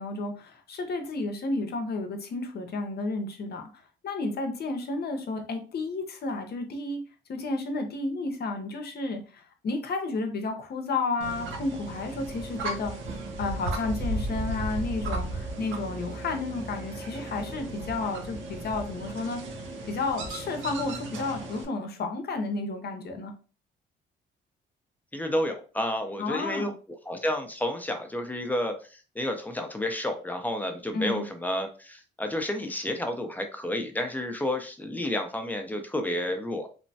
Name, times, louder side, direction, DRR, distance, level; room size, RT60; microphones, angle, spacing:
voice 1, 0.0-3.6 4.0-7.0 7.3-12.9 13.4-19.4 19.9-23.3 26.2-26.7 30.9-31.2, left 3 dB, 55° left, 5 dB, 0.8 m, -32 dB
sound 1, 11.2-21.7, right 2 dB, 75° right, 0.8 m, -35 dB
voice 2, 25.1-26.7 27.1-36.7, left 1 dB, 10° left, 5 dB, 0.6 m, -30 dB
3.1 x 2.1 x 2.7 m, 0.35 s
cardioid pair, 90°, 20 cm